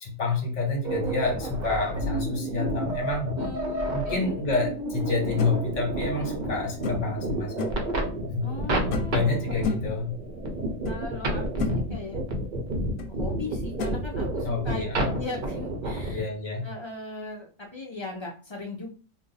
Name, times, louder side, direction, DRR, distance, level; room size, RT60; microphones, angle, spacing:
voice 1, 0.0-3.3 3.9-7.7 8.3-8.5 9.1-10.1 14.4-15.1 16.1-16.7, left 3 dB, 65° left, 2 dB, 1.3 m, -28 dB
sound 1, 0.8-16.2, right 1 dB, 50° right, 0.6 m, -30 dB
voice 2, 3.4-4.4 8.4-9.8 10.9-12.2 13.2-14.8 15.1-16.2 16.6-18.9, left 3 dB, 45° left, -2 dB, 0.3 m, -38 dB
sound 2, 5.4-5.6 6.8-7.2 7.6-7.9 8.9-9.2 9.6-10.0 10.9-11.0 11.3-11.8 13.0-13.1 13.8-14.0, left 5 dB, 85° left, 1.0 m, -32 dB
2.5 x 2.2 x 3.9 m, 0.38 s
omnidirectional pair, 1.4 m